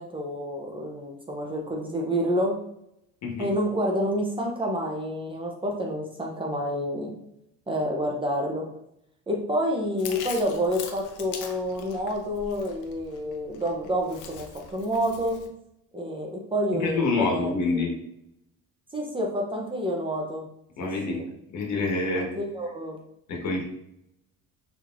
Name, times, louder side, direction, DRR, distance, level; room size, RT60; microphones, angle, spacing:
voice 1, 0.0-2.6 3.4-7.2 7.7-8.7 9.3-15.5 15.9-17.9 18.9-20.5 20.8-21.2 22.1-23.0, equal, 15° right, 0 dB, 0.7 m, -29 dB
Chewing mastication, 10.0-15.5, left 6 dB, 75° left, 0.8 m, -42 dB
voice 2, 16.8-17.9 20.8-21.2 21.5-22.3 23.3-23.6, left 3 dB, 60° left, -1 dB, 1.6 m, -26 dB
6.2 x 3.3 x 2.5 m, 0.78 s
cardioid pair, 140°, 31 cm